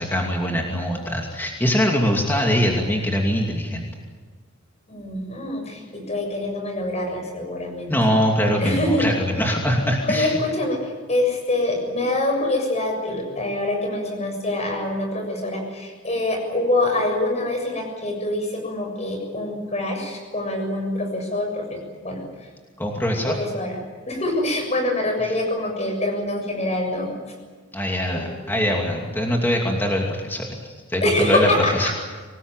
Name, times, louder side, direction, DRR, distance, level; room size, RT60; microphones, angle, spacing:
voice 1, 0.0-3.9 7.9-10.3 22.8-23.4 27.7-31.9, equal, 10° left, 0 dB, 2.7 m, -22 dB
voice 2, 4.9-7.9 8.6-9.1 10.1-22.2 23.1-23.8 24.1-27.1 28.1-28.4 31.0-31.9, left 1 dB, 35° left, 3 dB, 7.1 m, -25 dB
26.0 x 19.5 x 9.1 m, 1.4 s
head